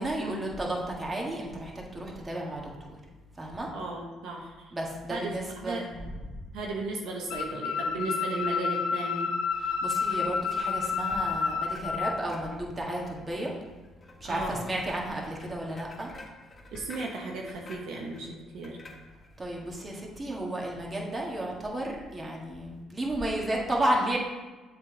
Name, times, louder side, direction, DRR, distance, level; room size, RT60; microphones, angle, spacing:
voice 1, 0.0-2.6 3.4-3.7 4.7-5.9 9.6-13.5 14.2-16.1 19.4-24.2, right 1 dB, 25° right, -2 dB, 1.7 m, -32 dB
voice 2, 3.7-4.7 5.1-5.8 6.5-9.3 14.2-14.7 16.7-18.3 18.5-18.8, right 2 dB, 75° right, -1 dB, 0.9 m, -35 dB
sound 1, 7.3-12.1, left 5 dB, 80° left, 0.7 m, -30 dB
sound 2, 10.0-19.4, left 2 dB, 30° left, 1.4 m, -50 dB
7.3 x 3.6 x 4.9 m, 1.3 s
supercardioid pair, 70°, 0 cm